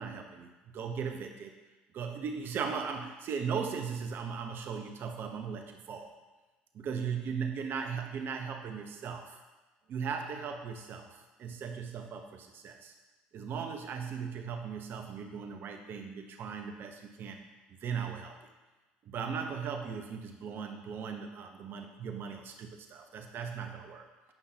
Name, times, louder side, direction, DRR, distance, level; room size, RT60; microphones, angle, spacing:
voice 1, 0.0-1.5 1.9-6.2 6.7-9.4 9.9-12.9 13.3-17.5 17.8-18.5 19.0-24.1, right 6 dB, 55° right, 5 dB, 1.0 m, -38 dB
8.9 x 5.6 x 2.9 m, 1.2 s
hypercardioid pair, 70°, 4 cm